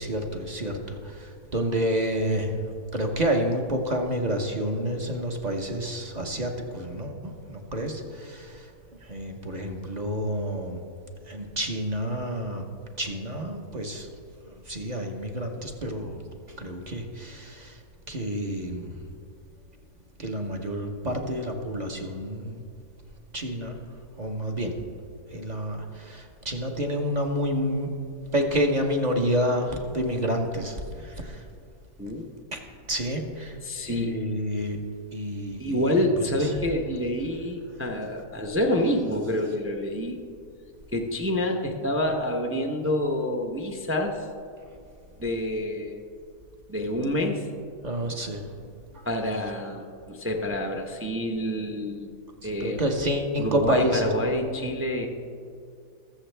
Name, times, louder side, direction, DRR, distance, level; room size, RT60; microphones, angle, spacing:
voice 1, 0.0-2.6 2.9-8.7 9.0-10.8 11.2-12.7 13.0-14.1 14.5-16.2 16.6-17.8 18.1-19.0 20.2-22.6 23.3-23.8 24.2-24.8 25.3-27.9 28.3-31.4 32.5-32.6 32.9-33.6 33.9-34.8 35.1-35.9 36.4-36.5 47.8-48.5 48.9-49.1 52.4-54.1, equal, 35° right, 3 dB, 0.9 m, -29 dB
voice 2, 33.6-34.1 35.6-40.2 40.9-44.3 45.2-46.0 46.7-47.5 49.0-52.1 52.4-52.8 53.4-55.1, left 1 dB, 20° right, 3 dB, 0.4 m, -27 dB
20.5 x 7.1 x 3.4 m, 2.4 s
omnidirectional pair, 1.6 m